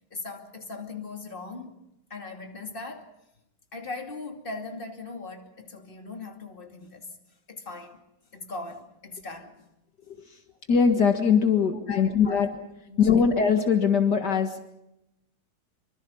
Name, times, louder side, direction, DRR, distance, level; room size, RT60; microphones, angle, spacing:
voice 1, 0.1-1.8 2.1-3.1 3.7-7.1 7.5-8.0 8.3-9.7 11.9-12.4 12.9-13.2, left 3 dB, 30° left, 2.7 m, -39 dB
voice 2, 10.7-12.5 13.0-14.7, left 6 dB, 65° left, 2.3 m, -21 dB
26.0 x 25.0 x 5.5 m
omnidirectional pair, 2.0 m